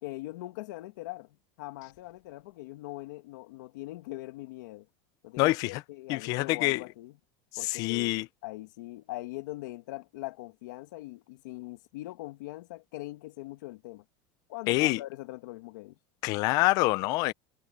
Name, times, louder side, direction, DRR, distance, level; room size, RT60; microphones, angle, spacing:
voice 1, 0.0-4.9 5.2-7.1 7.6-14.0 14.5-15.9, left 18 dB, 80° left, 1.6 m, -41 dB
voice 2, 5.4-5.8 6.1-6.8 7.6-8.3 14.7-15.0 16.2-17.3, left 21 dB, 40° left, 0.5 m, -26 dB
supercardioid pair, 175°, 10 cm